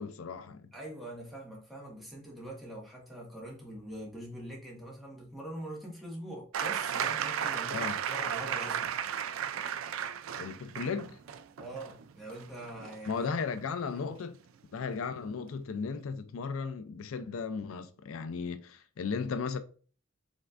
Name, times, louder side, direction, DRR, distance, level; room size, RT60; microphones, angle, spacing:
voice 1, 0.0-0.7 7.7-8.0 10.4-11.2 13.1-14.4 14.7-19.6, left 5 dB, 85° left, 0.4 m, -35 dB
voice 2, 0.7-8.9 11.6-13.3 13.9-14.1, right 1 dB, ahead, 1.6 m, -43 dB
sound 1, 6.5-14.1 15.3-15.4, right 8 dB, 80° right, 0.4 m, -35 dB
5.3 x 3.5 x 2.5 m
head